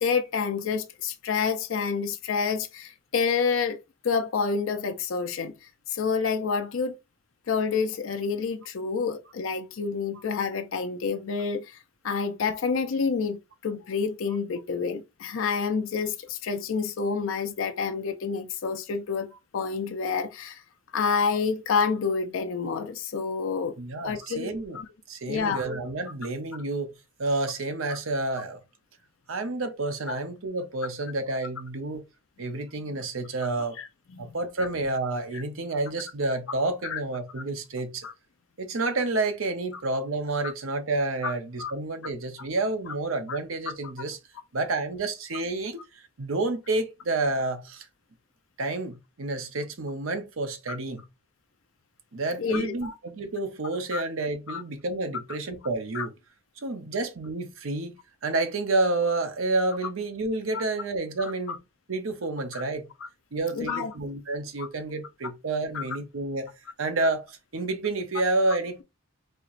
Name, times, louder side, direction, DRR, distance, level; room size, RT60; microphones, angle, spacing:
voice 1, 0.0-3.8 4.0-5.5 5.9-7.0 7.5-11.8 12.0-20.6 20.9-23.8 24.0-24.9 25.3-25.6 30.1-30.2 33.8-33.9 34.3-34.4 35.3-35.4 36.8-37.0 38.0-38.1 40.4-40.5 41.2-41.3 41.6-41.7 43.3-43.4 50.7-50.8 52.4-52.9 53.9-54.0 54.5-54.6 55.9-56.1 60.5-60.6 61.5-61.6 62.5-62.6 63.6-63.9 64.6-64.7 65.7-65.8, left 5 dB, 70° left, 0.5 m, -28 dB
voice 2, 23.8-24.8 25.1-26.9 27.2-28.6 29.3-32.0 32.4-33.8 34.2-38.1 38.6-44.2 44.5-47.9 48.6-51.1 52.1-56.1 56.6-57.9 58.2-61.6 61.9-62.9 63.3-68.8, right 2 dB, 75° right, 0.8 m, -29 dB
4.4 x 2.9 x 2.5 m
head